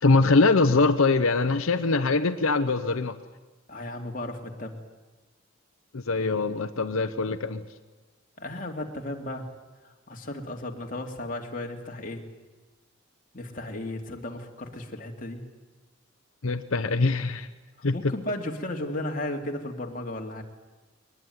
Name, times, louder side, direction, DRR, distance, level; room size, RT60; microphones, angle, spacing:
voice 1, 0.0-3.2 5.9-7.6 16.4-17.5 17.8-18.1, left 3 dB, 90° left, 9 dB, 0.9 m, -23 dB
voice 2, 3.7-4.8 8.4-9.5 9.8-12.2 13.3-15.5 17.9-20.4, left 1 dB, 40° left, 2 dB, 2.6 m, -35 dB
22.0 x 20.0 x 9.5 m, 1.2 s
head